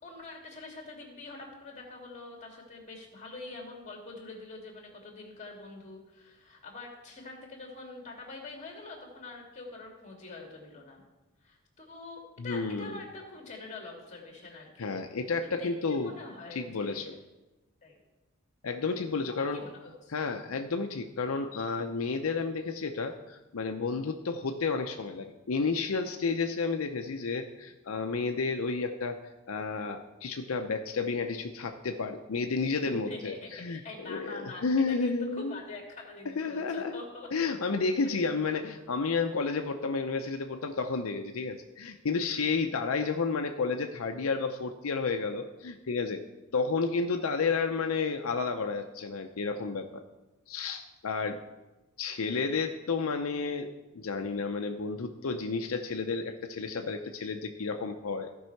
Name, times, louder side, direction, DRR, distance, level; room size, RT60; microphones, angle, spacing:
voice 1, 0.0-11.0 11.4-14.9 15.4-17.2 17.8-18.0 19.3-20.1 32.8-37.5 38.0-38.1, left 3 dB, 35° left, 0 dB, 2.3 m, -45 dB
voice 2, 12.4-13.0 14.8-16.2 16.5-17.2 18.6-19.6 20.1-35.6 36.4-37.0 37.3-46.2 46.5-50.0 50.5-51.4 52.0-53.7 53.9-58.4, left 4 dB, 85° left, 5 dB, 0.6 m, -31 dB
14.5 x 5.4 x 4.6 m, 1.1 s
head